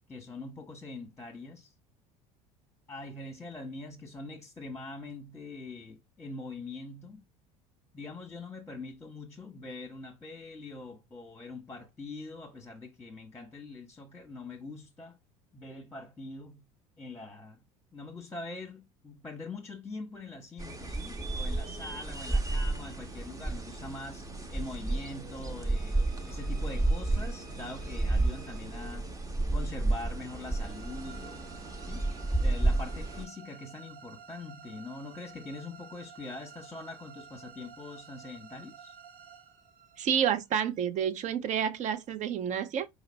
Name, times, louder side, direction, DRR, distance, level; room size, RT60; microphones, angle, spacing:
voice 1, 0.1-1.7 2.9-7.2 7.9-15.2 15.5-16.6 17.0-17.6 17.9-26.0 26.3-29.1 29.5-32.1 32.4-39.0, left 3 dB, 10° left, 1.0 m, -43 dB
sound 1, 20.6-33.3, right 2 dB, 15° right, 0.9 m, -31 dB
sound 2, 25.7-40.8, right 6 dB, 60° right, 0.9 m, -52 dB
voice 2, 40.0-42.9, right 8 dB, 40° right, 0.6 m, -29 dB
5.0 x 2.0 x 3.9 m
figure-of-eight pair, 65°, 19 cm